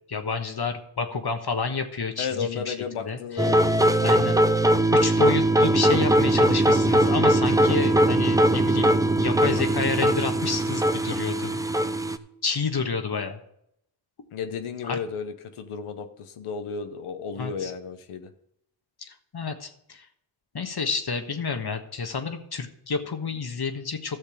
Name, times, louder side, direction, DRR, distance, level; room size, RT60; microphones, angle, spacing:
voice 1, 0.0-3.5 4.0-4.4 4.9-11.6 12.4-13.4 14.8-15.0 17.4-17.7 19.0-20.1 20.5-24.2, left 5 dB, 50° left, 6 dB, 1.5 m, -30 dB
voice 2, 2.2-4.4 14.3-18.3, left 6 dB, 90° left, 8 dB, 1.0 m, -33 dB
sound 1, 3.4-12.2, right 1 dB, 5° right, 0.7 m, -21 dB
12.5 x 6.5 x 5.0 m, 0.76 s
cardioid pair, 45°, 49 cm